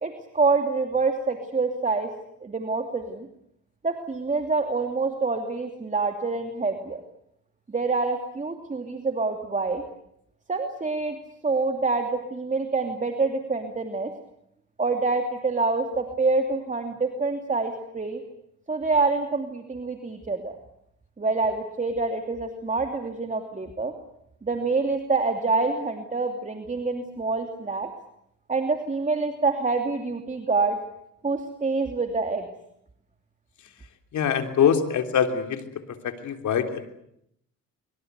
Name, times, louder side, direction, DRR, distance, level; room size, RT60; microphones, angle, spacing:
voice 1, 0.0-2.1 2.4-3.3 3.8-7.0 7.7-9.8 10.5-11.2 11.4-14.1 14.8-18.2 18.7-20.5 21.2-23.9 24.4-27.9 28.5-30.8 31.2-32.5, right 3 dB, 25° right, 5 dB, 2.8 m, -26 dB
voice 2, 34.1-36.9, left 8 dB, 70° left, 6 dB, 3.3 m, -24 dB
24.5 x 24.0 x 8.2 m, 0.75 s
cardioid pair, 90°, 30 cm